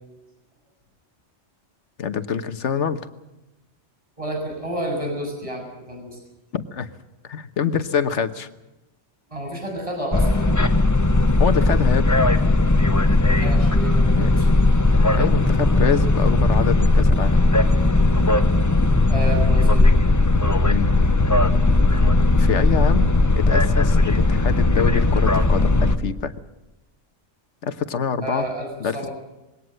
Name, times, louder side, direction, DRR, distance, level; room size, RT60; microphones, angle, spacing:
voice 1, 2.0-3.1 6.5-6.9 7.2-8.5 11.4-12.1 14.2-14.7 15.1-17.4 20.6-21.1 22.4-26.3 27.6-28.5 28.8-29.1, left 6 dB, 75° left, 11 dB, 1.4 m, -25 dB
voice 2, 4.2-6.2 9.3-10.5 13.4-14.4 14.8-14.9 19.1-19.9 28.2-29.1, right 1 dB, 25° right, 0 dB, 7.0 m, -30 dB
sound 1, 10.1-26.0, left 2 dB, 15° left, 0.8 m, -17 dB
21.5 x 18.0 x 7.8 m, 1.0 s
omnidirectional pair, 1.2 m